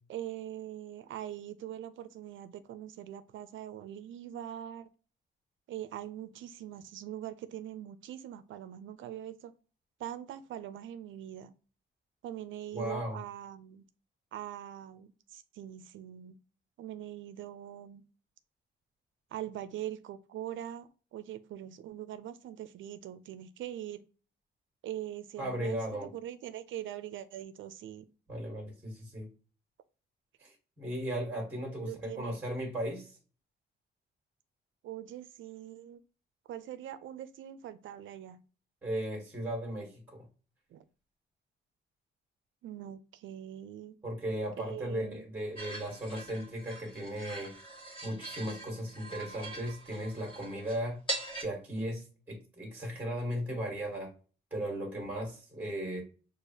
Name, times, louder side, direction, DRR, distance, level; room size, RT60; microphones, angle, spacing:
voice 1, 0.1-4.9 5.7-9.5 10.0-11.5 12.2-13.8 14.3-16.4 16.8-18.0 19.3-24.0 24.8-28.1 31.8-32.4 34.8-36.0 36.5-38.4 40.7-40.8 42.6-43.9 44.6-45.2, right 11 dB, 70° right, 12 dB, 0.4 m, -42 dB
voice 2, 12.7-13.2 25.4-26.1 28.3-29.3 30.4-33.2 38.8-40.2 44.0-47.5 48.0-51.0 51.4-54.1 54.5-56.0, equal, 10° right, 0 dB, 1.4 m, -36 dB
sound 1, 45.6-51.4, right 2 dB, 25° left, 1.5 m, -42 dB
6.4 x 2.4 x 2.7 m, 0.37 s
wide cardioid pair, 175°, 20 cm